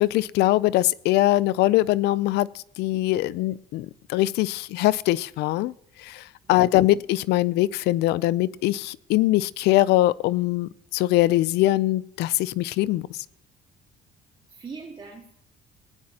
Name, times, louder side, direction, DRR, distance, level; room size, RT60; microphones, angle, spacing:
voice 1, 0.0-2.5 2.8-5.7 6.0-6.2 6.5-13.0, left 16 dB, 80° left, 22 dB, 0.4 m, -22 dB
voice 2, 6.4-7.0 14.5-15.3, right 5 dB, 30° right, -1 dB, 1.9 m, -42 dB
19.0 x 9.5 x 2.8 m, 0.72 s
cardioid pair, 110°, 17 cm